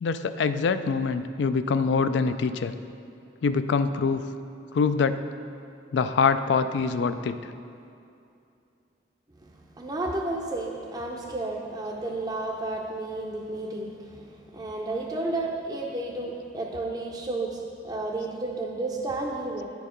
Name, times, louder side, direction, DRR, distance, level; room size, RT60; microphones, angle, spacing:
voice 1, 0.0-2.7 3.4-4.2 4.7-5.2 5.9-7.4, left 5 dB, 65° left, 11 dB, 0.3 m, -24 dB
voice 2, 9.8-19.6, right 2 dB, 20° right, -2 dB, 0.5 m, -32 dB
9.5 x 4.6 x 5.0 m, 2.6 s
head